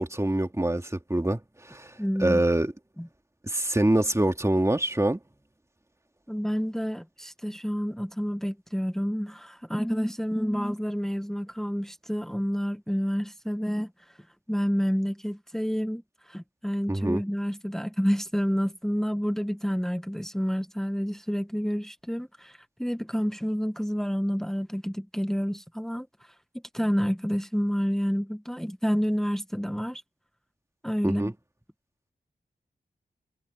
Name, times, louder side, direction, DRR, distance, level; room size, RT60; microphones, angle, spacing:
voice 1, 0.0-1.4 1.7-1.9 2.2-2.7 3.4-5.2 16.9-17.2 31.0-31.3, right 1 dB, 15° right, 2.5 m, -25 dB
voice 2, 2.0-2.4 3.0-3.1 6.3-13.9 14.5-16.0 16.3-26.1 26.7-30.0 30.8-31.3, equal, ahead, 1.6 m, -29 dB
cardioid pair, 50°, 18 cm